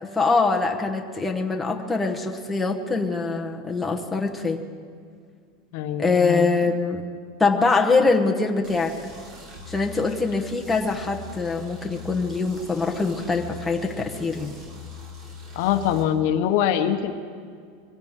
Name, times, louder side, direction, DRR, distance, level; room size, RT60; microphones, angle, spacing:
voice 1, 0.0-4.6 6.0-7.0 7.4-8.9 9.7-14.5, left 3 dB, 5° left, 0 dB, 1.1 m, -23 dB
voice 2, 5.7-6.5 15.5-17.1, left 10 dB, 55° left, 8 dB, 1.0 m, -23 dB
sound 1, 8.6-16.0, left 5 dB, 40° right, 3.8 m, -41 dB
24.0 x 16.5 x 3.7 m, 2.1 s
supercardioid pair, 160°, 0 cm